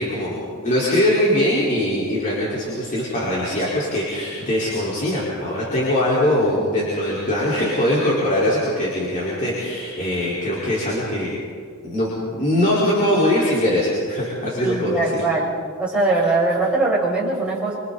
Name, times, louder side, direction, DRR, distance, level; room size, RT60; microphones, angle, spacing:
voice 1, 0.0-11.3 11.8-12.1 12.3-15.2, left 1 dB, 35° left, -8 dB, 4.8 m, -21 dB
voice 2, 14.6-15.4 15.8-17.8, right 2 dB, 5° right, -6 dB, 5.9 m, -21 dB
27.0 x 26.5 x 4.2 m, 2.1 s
head